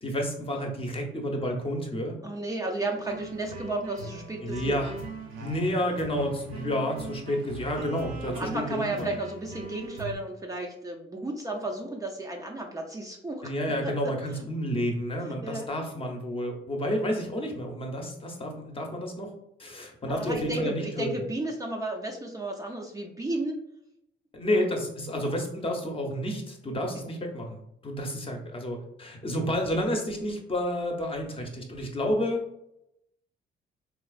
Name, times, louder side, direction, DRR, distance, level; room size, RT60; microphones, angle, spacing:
voice 1, 0.0-2.2 4.4-4.9 5.4-9.1 13.4-19.3 19.6-21.1 24.3-32.4, equal, 25° left, 2 dB, 0.8 m, -30 dB
voice 2, 2.2-4.8 8.3-14.5 15.2-15.7 20.1-23.6 24.5-24.7 25.2-25.3, right 2 dB, 15° right, 0 dB, 0.5 m, -33 dB
sound 1, 3.1-10.1, right 3 dB, 80° right, 0.7 m, -41 dB
4.3 x 2.4 x 2.4 m, 0.80 s
cardioid pair, 90°, 20 cm